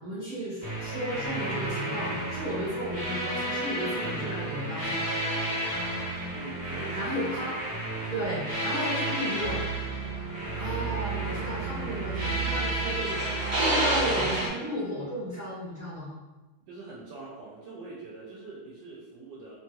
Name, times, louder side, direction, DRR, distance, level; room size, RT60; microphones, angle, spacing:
voice 1, 0.0-5.0 6.9-7.5 8.1-9.6 10.5-16.1, equal, 50° right, -12 dB, 0.5 m, -34 dB
sound 1, 0.6-14.5, right 2 dB, 10° right, 0.8 m, -31 dB
voice 2, 6.3-7.4 16.7-19.6, right 3 dB, 75° right, -5 dB, 1.2 m, -43 dB
Wind instrument woodwind instrument, 10.0-15.2, left 1 dB, 70° left, 1.1 m, -48 dB
3.2 x 2.3 x 2.7 m, 1.1 s
omnidirectional pair, 2.0 m